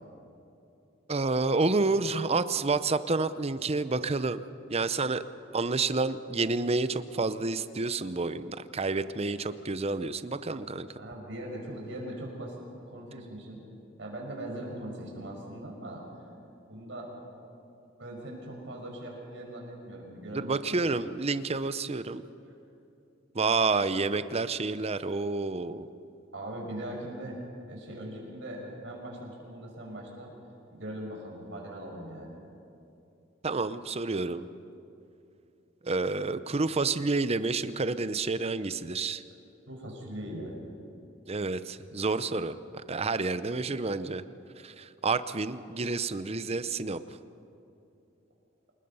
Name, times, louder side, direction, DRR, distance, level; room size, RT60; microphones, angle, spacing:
voice 1, 1.1-4.4 4.7-5.2 5.5-10.9 20.3-22.2 23.3-25.9 33.4-34.5 35.8-39.2 41.3-42.6 42.9-44.2 44.6-47.0, right 3 dB, 35° right, 13 dB, 0.7 m, -29 dB
voice 2, 11.0-12.6 12.8-13.6 14.0-16.0 16.6-17.1 18.0-20.8 26.3-27.4 27.7-30.3 30.7-32.3 39.7-40.6, right 1 dB, 75° right, 0 dB, 6.0 m, -40 dB
28.0 x 20.5 x 5.6 m, 2.8 s
head